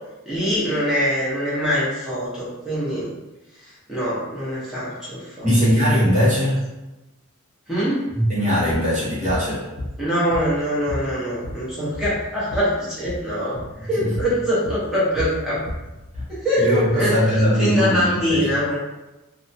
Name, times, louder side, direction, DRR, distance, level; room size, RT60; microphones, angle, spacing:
voice 1, 0.2-3.1 3.6-5.5 7.7-8.0 10.0-15.6 16.3-17.1 17.6-18.8, equal, 5° right, -10 dB, 0.9 m, -23 dB
voice 2, 5.4-6.6 8.1-9.7 14.0-14.1 16.6-18.5, equal, 35° right, -9 dB, 0.9 m, -20 dB
sound 1, 8.7-8.9 9.2-9.5 9.8-10.6 10.9-12.7 13.0-13.2 13.5-13.7 14.1-14.4 14.7-16.4, left 1 dB, 55° left, 0.6 m, -32 dB
2.7 x 2.2 x 2.7 m, 1.0 s
head